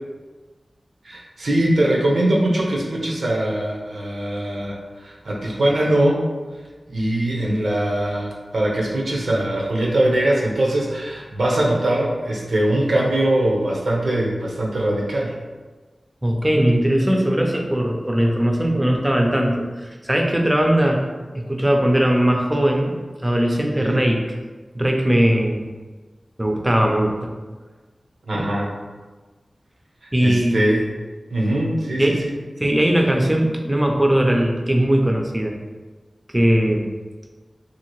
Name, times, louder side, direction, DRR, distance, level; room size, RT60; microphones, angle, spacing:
voice 1, 1.0-6.2 6.9-15.3 23.8-24.0 28.3-28.7 30.2-30.8 31.3-32.3, right 1 dB, 85° right, -2 dB, 0.6 m, -21 dB
voice 2, 16.2-21.1 21.3-23.0 23.2-24.3 24.7-25.7 26.4-27.3 28.3-28.4 30.1-30.6 32.0-32.2 32.6-35.6 36.3-36.9, right 1 dB, 15° right, 2 dB, 0.4 m, -19 dB
2.8 x 2.5 x 2.9 m, 1.3 s
wide cardioid pair, 60°, 0 cm